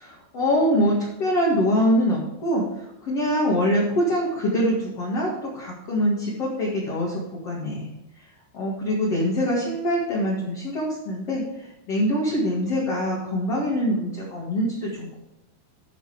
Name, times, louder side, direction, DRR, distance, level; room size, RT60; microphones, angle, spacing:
voice 1, 0.0-7.9 8.5-15.2, equal, 50° left, -4 dB, 2.1 m, -24 dB
13.0 x 5.4 x 4.9 m, 0.88 s
omnidirectional pair, 5.3 m